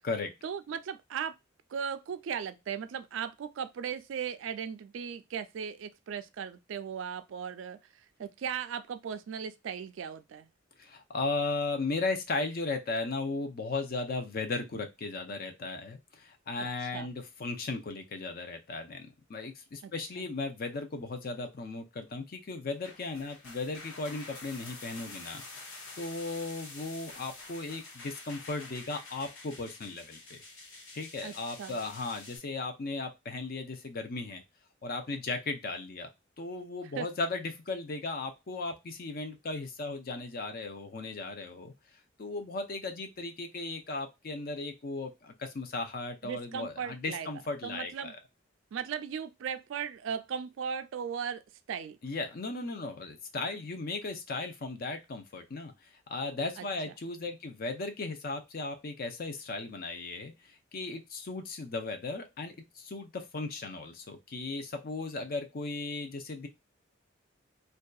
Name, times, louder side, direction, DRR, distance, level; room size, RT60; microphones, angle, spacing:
voice 1, 0.4-1.4 1.7-10.5 16.6-17.1 19.8-20.3 31.2-31.8 37.0-37.1 46.2-47.3 47.6-48.1 48.7-51.4 51.7-52.0 56.6-56.7, right 7 dB, 65° right, 0.3 m, -37 dB
voice 2, 10.8-30.4 30.9-34.4 34.8-36.1 36.4-41.7 42.2-48.2 52.0-55.7 56.1-60.3 60.7-66.5, left 3 dB, 45° left, 0.5 m, -36 dB
sound 1, 22.7-32.4, left 3 dB, 85° left, 1.1 m, -48 dB
2.7 x 2.2 x 2.2 m
head